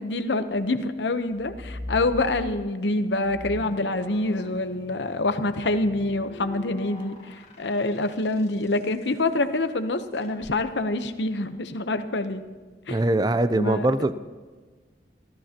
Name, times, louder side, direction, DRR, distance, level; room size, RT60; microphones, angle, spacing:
voice 1, 0.0-12.4 12.9-13.0 13.5-13.9, left 2 dB, 80° left, 9 dB, 0.9 m, -26 dB
sound 1, 1.3-2.7 3.2-8.7 10.2-10.5, left 1 dB, 35° left, 2.0 m, -41 dB
voice 2, 12.9-14.2, right 1 dB, 25° right, 13 dB, 0.5 m, -22 dB
26.5 x 14.0 x 2.9 m, 1.4 s
head